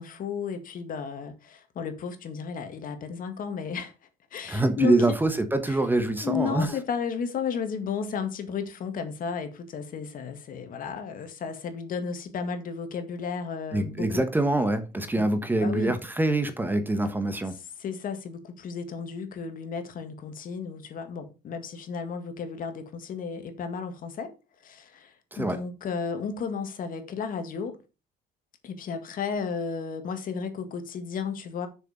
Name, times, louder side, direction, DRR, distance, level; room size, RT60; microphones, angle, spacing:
voice 1, 0.0-3.9 4.3-5.2 5.6-5.8 6.2-14.2 15.0-15.3 15.5-16.0 17.5-24.3 24.6-27.8 28.6-31.7, left 6 dB, 55° left, 2.0 m, -33 dB
voice 2, 4.5-6.7 13.7-17.6 25.3-25.6, right 2 dB, 10° right, 1.2 m, -25 dB
6.8 x 6.5 x 5.0 m
cardioid pair, 110°, 17 cm